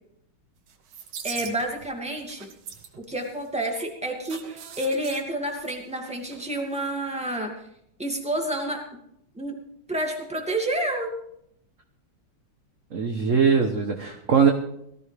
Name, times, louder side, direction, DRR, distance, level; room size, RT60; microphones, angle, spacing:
sound 1, 0.7-1.9 2.2-6.5 6.7-6.8, right 7 dB, 80° right, 2.1 m, -41 dB
voice 1, 1.2-2.5 3.1-7.5 8.0-9.0 9.3-9.6 9.9-11.1, right 1 dB, 5° right, 1 dB, 2.2 m, -29 dB
voice 2, 12.9-14.5, right 6 dB, 45° right, 4 dB, 1.3 m, -21 dB
18.5 x 14.0 x 3.5 m, 0.74 s
omnidirectional pair, 2.2 m